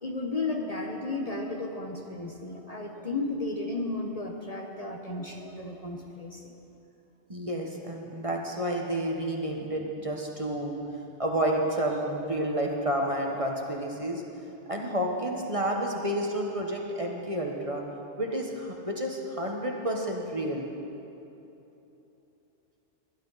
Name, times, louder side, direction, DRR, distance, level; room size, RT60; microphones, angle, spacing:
voice 1, 0.0-6.5, left 2 dB, 35° left, 1 dB, 1.0 m, -34 dB
voice 2, 7.3-10.8 11.2-14.2 14.7-17.8 18.2-20.7, right 1 dB, 30° right, 0 dB, 1.2 m, -30 dB
21.0 x 11.5 x 4.0 m, 3.0 s
omnidirectional pair, 1.2 m